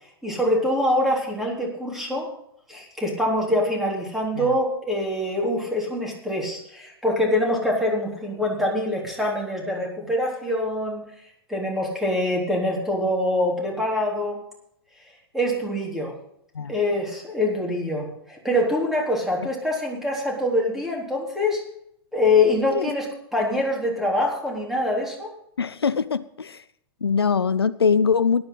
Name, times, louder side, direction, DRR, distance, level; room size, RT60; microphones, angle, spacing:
voice 1, 0.2-2.3 2.7-11.0 11.5-14.4 15.3-16.1 16.7-21.6 22.1-25.3, left 1 dB, ahead, -1 dB, 3.7 m, -24 dB
voice 2, 25.6-26.6 27.0-28.4, left 5 dB, 75° left, 16 dB, 0.5 m, -22 dB
17.0 x 11.0 x 4.0 m, 0.73 s
figure-of-eight pair, 105°, 13 cm